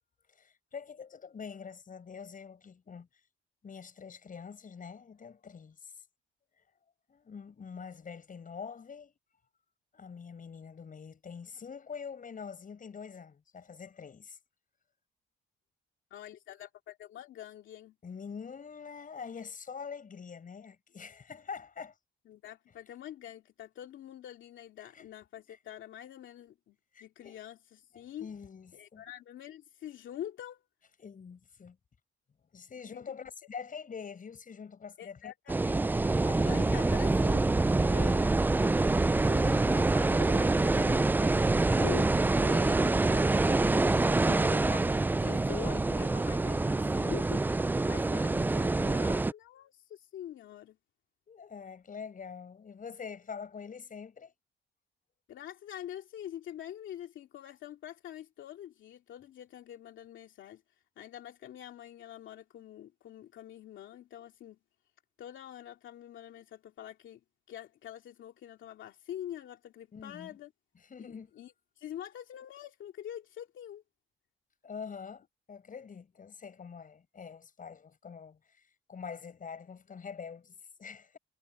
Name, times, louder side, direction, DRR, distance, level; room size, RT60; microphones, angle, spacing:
voice 1, 0.3-3.1 3.6-5.9 7.1-9.1 9.9-14.4 18.0-22.0 24.8-25.1 26.9-27.4 27.9-29.0 31.0-31.8 32.5-35.3 36.2-36.8 37.9-38.3 39.3-39.6 51.3-54.3 69.9-70.4 70.9-71.3 74.6-78.6 78.9-81.2, left 6 dB, 45° left, 7.2 m, -45 dB
voice 2, 16.1-18.0 22.3-28.3 28.7-30.6 32.9-33.3 35.0-35.8 36.4-37.9 39.3-50.8 55.3-60.6 61.0-64.6 65.2-67.2 67.5-70.5 71.0-73.8, left 11 dB, 75° left, 2.5 m, -45 dB
sound 1, 35.5-49.3, right 2 dB, 10° right, 0.3 m, -26 dB
cardioid pair, 90°, 20 cm